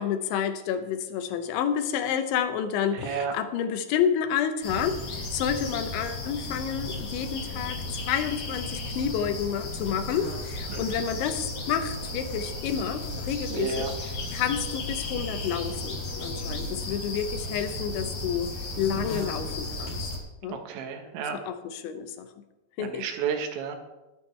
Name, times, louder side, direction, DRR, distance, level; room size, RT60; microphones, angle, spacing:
voice 1, 0.0-5.0 5.3-13.9 14.3-18.5 18.8-20.0 20.4-20.6 21.3-22.3 22.8-23.1, left 8 dB, 85° left, 9 dB, 3.3 m, -29 dB
voice 2, 2.9-3.3 10.7-11.0 13.5-13.9 19.0-19.2 20.5-21.4 22.8-23.8, right 6 dB, 80° right, 5 dB, 3.6 m, -32 dB
sound 1, 4.6-20.2, left 2 dB, 50° left, 3.7 m, -34 dB
21.0 x 9.0 x 3.3 m, 1.0 s
omnidirectional pair, 5.2 m